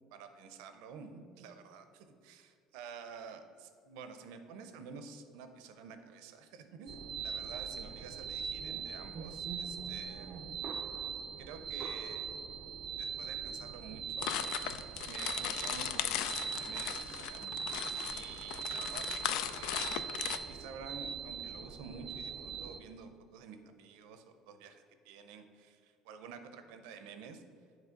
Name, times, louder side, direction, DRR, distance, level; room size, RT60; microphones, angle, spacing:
voice 1, 0.1-10.5 11.4-12.3 13.0-14.3 15.0-17.6 18.0-20.0 20.5-27.4, right 5 dB, 85° right, 8 dB, 0.6 m, -50 dB
sound 1, 6.9-22.8, right 7 dB, 40° right, 0.4 m, -41 dB
sound 2, 14.2-20.4, left 11 dB, 75° left, 0.3 m, -37 dB
7.4 x 3.2 x 5.1 m, 2.3 s
cardioid pair, 120°, 0 cm